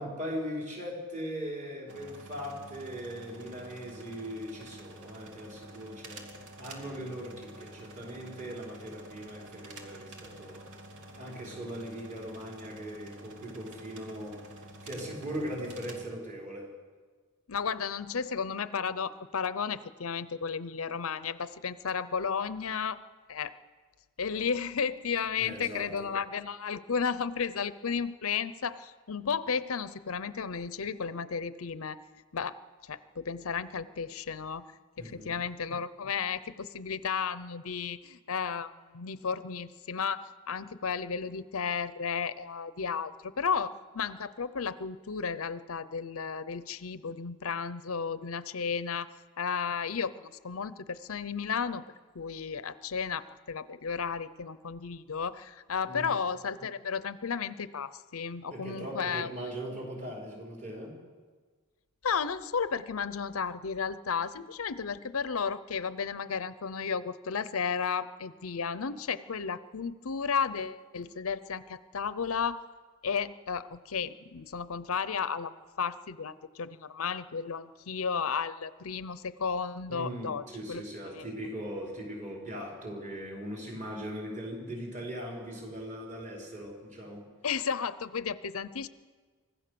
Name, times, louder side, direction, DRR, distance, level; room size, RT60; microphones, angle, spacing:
voice 1, 0.0-6.3 6.6-10.6 11.2-14.4 14.8-16.7 25.4-26.1 35.0-35.3 55.9-56.1 58.5-61.0 79.9-87.2, equal, 35° right, -2 dB, 5.5 m, -39 dB
sound 1, 1.9-16.1, right 1 dB, 90° right, 2.4 m, -49 dB
voice 2, 17.5-23.0 23.3-23.5 24.2-32.0 32.3-32.6 32.8-34.6 35.0-49.1 49.4-51.8 52.1-59.3 62.0-72.6 73.0-75.5 75.8-81.3 87.4-88.9, left 6 dB, 70° left, 15 dB, 0.7 m, -33 dB
25.0 x 16.0 x 6.9 m, 1.5 s
head